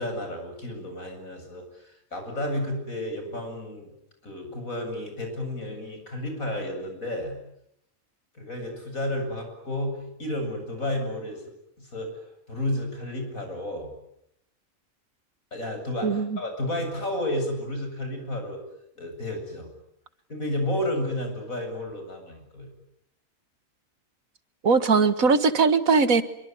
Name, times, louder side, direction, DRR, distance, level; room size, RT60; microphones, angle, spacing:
voice 1, 0.0-3.9 4.2-7.4 8.3-11.4 11.8-12.1 12.5-13.9 15.5-18.6 18.9-19.7 20.3-22.7, left 1 dB, 85° left, 5 dB, 8.4 m, -31 dB
voice 2, 16.0-16.4 24.6-26.2, right 4 dB, 90° right, 12 dB, 2.1 m, -20 dB
26.5 x 23.5 x 9.4 m, 0.78 s
omnidirectional pair, 1.4 m